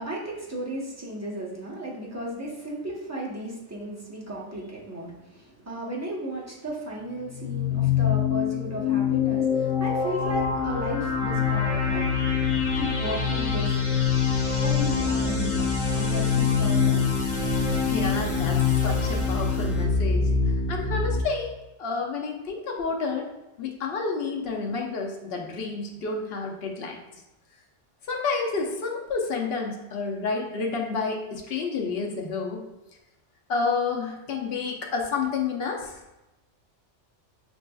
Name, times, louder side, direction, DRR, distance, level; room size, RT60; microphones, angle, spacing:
voice 1, 0.0-12.1 12.7-13.7 14.6-15.7 15.9-17.0, right 1 dB, 15° right, -5 dB, 0.7 m, -34 dB
sound 1, 7.3-19.8, left 9 dB, 80° left, 1.1 m, -26 dB
sound 2, 10.2-21.2, left 2 dB, 60° right, 0.8 m, -28 dB
voice 2, 17.5-20.3 20.7-21.5 21.8-23.3 23.6-27.2 28.1-32.6 33.5-36.0, left 4 dB, 60° left, 1 dB, 0.8 m, -30 dB
6.0 x 2.7 x 2.3 m, 0.98 s
omnidirectional pair, 1.2 m